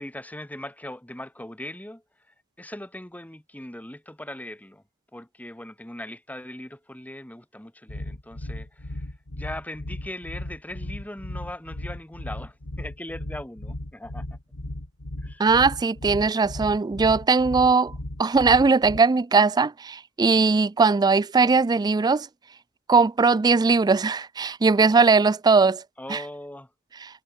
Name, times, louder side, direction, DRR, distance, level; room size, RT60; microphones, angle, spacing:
voice 1, 0.0-4.8 5.1-14.4 15.2-15.5 26.0-26.7, left 1 dB, 5° left, 1.5 m, -40 dB
sound 1, 7.9-19.0, left 1 dB, 85° left, 2.4 m, -36 dB
voice 2, 15.4-17.9 18.2-22.3 22.9-25.8 26.1-26.2, right 4 dB, 20° right, 0.3 m, -19 dB
head